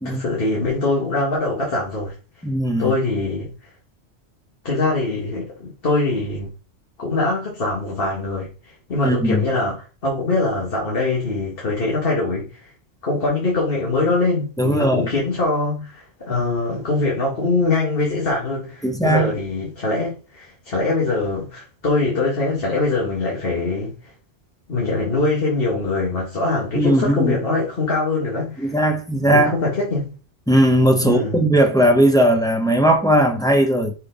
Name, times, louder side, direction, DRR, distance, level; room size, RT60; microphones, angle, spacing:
voice 1, 0.0-2.1 2.8-3.5 4.6-6.5 7.0-12.7 13.0-24.1 24.7-28.8 29.2-30.2 31.0-31.4, left 3 dB, 55° left, 1.9 m, -23 dB
voice 2, 2.4-2.9 9.0-9.4 14.6-15.1 18.8-19.3 26.7-27.4 28.6-29.5 30.5-33.9, right 1 dB, 5° left, 0.9 m, -18 dB
5.2 x 4.4 x 5.1 m
omnidirectional pair, 1.1 m